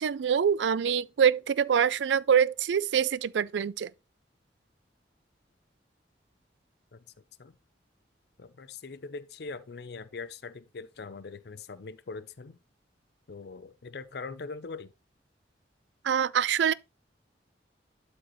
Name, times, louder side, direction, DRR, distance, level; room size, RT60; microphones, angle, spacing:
voice 1, 0.0-3.9 16.0-16.7, right 7 dB, 80° right, 0.4 m, -25 dB
voice 2, 8.4-12.6 13.3-14.9, left 4 dB, 65° left, 0.5 m, -42 dB
12.0 x 4.4 x 3.1 m
head